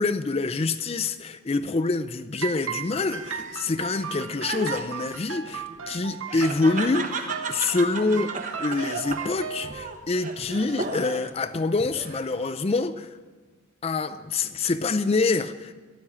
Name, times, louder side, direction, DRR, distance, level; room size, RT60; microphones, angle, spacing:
voice 1, 0.0-8.3 8.6-13.1 13.8-15.7, left 3 dB, 30° left, 0.4 m, -26 dB
sound 1, 2.4-9.8, right 7 dB, 75° right, 0.8 m, -36 dB
Laughter, 3.0-11.4 11.8-12.5, right 3 dB, 35° right, 1.0 m, -35 dB
13.0 x 11.5 x 8.6 m
head